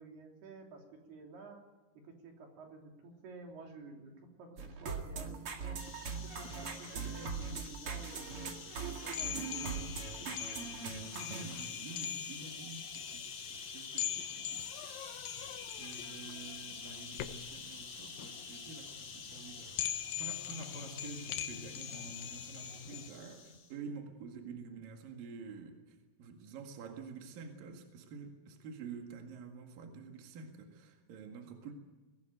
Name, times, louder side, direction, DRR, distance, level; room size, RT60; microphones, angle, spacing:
voice 1, 0.0-1.7 1.9-5.8 6.2-8.5 8.9-10.4, right 3 dB, 90° right, 1 dB, 5.2 m, -51 dB
sound 1, 4.6-11.5, right 5 dB, 45° right, 2.5 m, -41 dB
sound 2, 5.8-23.7, left 5 dB, 40° left, 3.2 m, -48 dB
sound 3, 9.1-23.1, left 11 dB, 75° left, 2.5 m, -42 dB
voice 2, 11.2-14.7 15.8-31.7, right 5 dB, 65° right, 3 dB, 3.6 m, -49 dB
23.0 x 19.0 x 9.2 m, 1.2 s
omnidirectional pair, 4.4 m